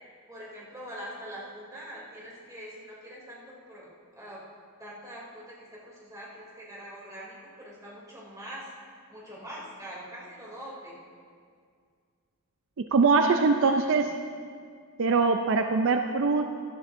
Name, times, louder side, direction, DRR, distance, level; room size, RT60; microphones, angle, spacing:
voice 1, 0.3-4.4 4.8-8.7 9.1-11.0 13.2-13.9, equal, 15° right, -6 dB, 2.8 m, -43 dB
voice 2, 12.8-14.1 15.0-16.6, right 4 dB, 60° right, 6 dB, 0.4 m, -23 dB
14.5 x 11.0 x 2.6 m, 2.1 s
head